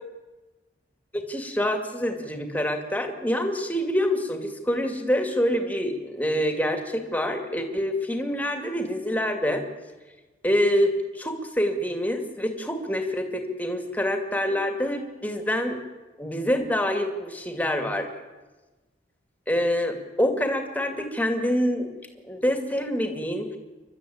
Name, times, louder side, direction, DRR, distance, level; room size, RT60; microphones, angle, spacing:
voice 1, 1.1-9.7 10.4-15.8 16.2-18.1 19.5-21.9 22.3-23.5, equal, 10° left, 5 dB, 2.2 m, -26 dB
28.5 x 12.5 x 8.7 m, 1.2 s
head